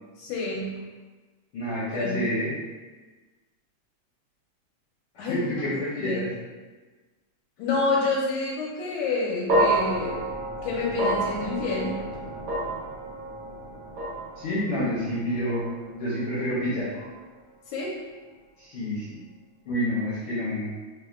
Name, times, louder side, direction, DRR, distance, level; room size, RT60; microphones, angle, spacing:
voice 1, 0.2-0.7 1.9-2.1 5.2-5.5 6.0-6.2 7.6-10.2 10.6-11.9 17.7-18.0, left 3 dB, 85° left, -3 dB, 2.0 m, -28 dB
voice 2, 1.5-2.5 5.3-6.3 14.4-15.6 15.9-16.9 18.6-19.2 19.7-20.7, equal, 70° left, -9 dB, 1.4 m, -28 dB
sound 1, 9.5-17.8, right 1 dB, 70° right, 1.0 m, -30 dB
4.2 x 3.4 x 2.4 m, 1.3 s
omnidirectional pair, 3.5 m